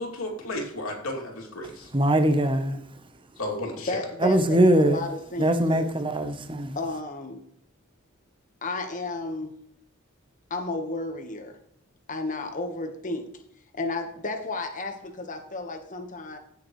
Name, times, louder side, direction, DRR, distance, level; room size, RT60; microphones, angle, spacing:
voice 1, 0.0-1.9 3.4-4.0, left 1 dB, 85° left, 2.8 m, -33 dB
voice 2, 1.9-2.8 4.2-5.0 5.4-6.8, right 1 dB, 25° right, 0.9 m, -21 dB
voice 3, 3.9-5.9 6.7-7.4 8.6-9.5 10.5-11.6 12.1-13.3 13.7-16.4, left 2 dB, 40° left, 1.2 m, -32 dB
15.5 x 6.7 x 3.1 m
head